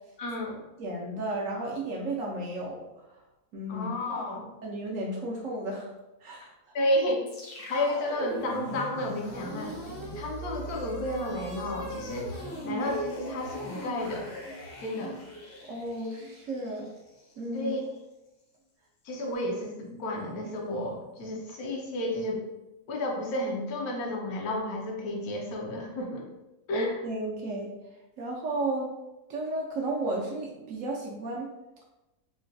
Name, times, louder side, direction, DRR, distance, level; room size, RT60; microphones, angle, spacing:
voice 1, 0.2-0.6 3.7-4.4 6.7-7.3 7.6-14.3 14.8-15.2 17.5-17.8 19.0-22.4 22.9-26.3 26.7-27.0, left 1 dB, 75° left, 0 dB, 1.1 m, -32 dB
voice 2, 0.8-2.9 3.5-4.2 4.6-5.9 6.2-6.5 15.7-16.9 17.4-17.7 26.7-27.7 28.2-28.9 29.3-31.5, right 2 dB, 70° right, -2 dB, 0.8 m, -33 dB
sound 1, 7.3-17.5, right 1 dB, 50° left, 0.8 m, -39 dB
3.8 x 2.1 x 2.5 m, 1.0 s
omnidirectional pair, 1.7 m